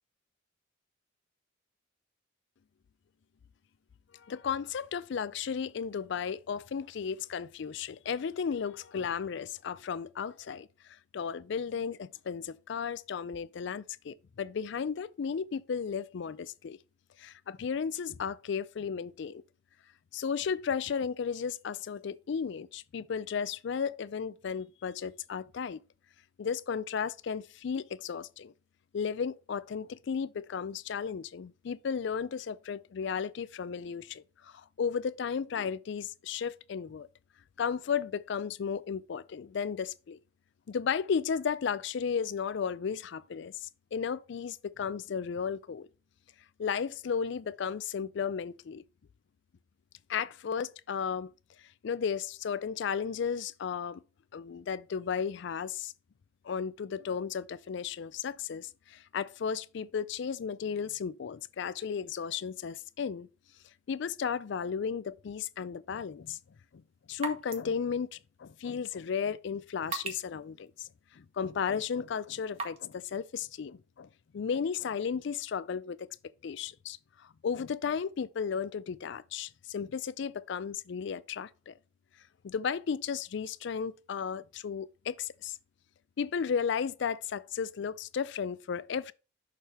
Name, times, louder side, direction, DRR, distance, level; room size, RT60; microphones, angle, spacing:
voice 1, 4.1-10.7 11.1-16.8 17.2-19.4 20.1-25.8 26.4-28.5 28.9-37.1 37.6-40.2 40.7-45.9 46.6-48.8 50.1-51.3 51.8-54.0 54.3-55.9 56.4-63.3 63.9-66.4 67.1-70.9 71.1-76.1 76.4-81.8 82.4-85.6 86.2-89.1, left 6 dB, 60° left, 0.4 m, -34 dB
sound 1, 66.2-73.0, right 4 dB, 30° right, 1.1 m, -45 dB
6.6 x 3.4 x 5.7 m
head